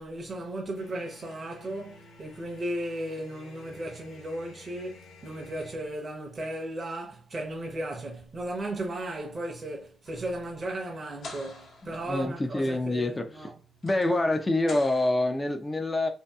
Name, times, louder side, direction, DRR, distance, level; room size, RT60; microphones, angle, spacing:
voice 1, 0.0-13.5, right 1 dB, 40° right, 0.7 m, -35 dB
sound 1, 0.8-5.8, left 2 dB, 90° left, 0.5 m, -52 dB
sound 2, 10.0-15.1, left 2 dB, 70° left, 0.9 m, -49 dB
voice 2, 11.8-13.3 13.8-16.1, left 2 dB, 20° left, 0.4 m, -26 dB
2.7 x 2.5 x 2.3 m
cardioid pair, 70°, 0 cm